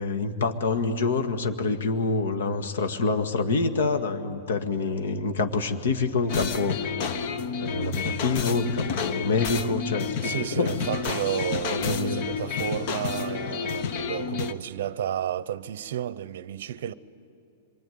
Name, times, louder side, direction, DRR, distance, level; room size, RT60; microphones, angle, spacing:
voice 1, 0.0-6.9 7.6-10.8 11.7-12.3, left 3 dB, 90° left, 1.9 m, -26 dB
sound 1, 6.3-14.5, left 6 dB, 35° left, 1.0 m, -30 dB
voice 2, 10.2-16.9, right 10 dB, 60° right, 0.8 m, -32 dB
26.0 x 24.0 x 9.5 m
supercardioid pair, 175°, 0 cm